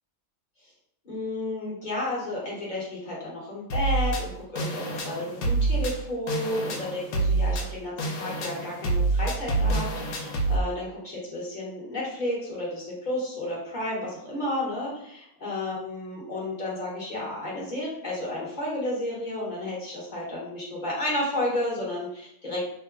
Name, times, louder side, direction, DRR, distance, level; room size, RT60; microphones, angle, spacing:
voice 1, 1.0-22.6, left 1 dB, 35° left, -5 dB, 1.0 m, -32 dB
sound 1, 3.7-10.6, right 3 dB, 70° left, 1.1 m, -27 dB
2.9 x 2.1 x 3.6 m, 0.76 s
omnidirectional pair, 1.6 m